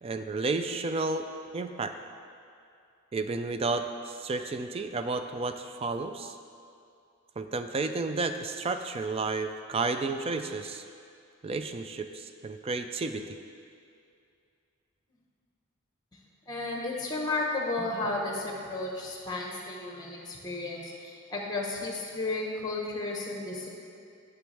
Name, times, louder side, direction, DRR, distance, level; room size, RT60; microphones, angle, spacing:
voice 1, 0.0-1.3 1.5-1.9 3.1-6.4 7.4-10.9 11.4-13.4, right 3 dB, 30° right, 8 dB, 0.3 m, -32 dB
voice 2, 16.5-23.7, left 2 dB, 20° left, -1 dB, 1.1 m, -33 dB
9.3 x 7.0 x 3.4 m, 2.5 s
head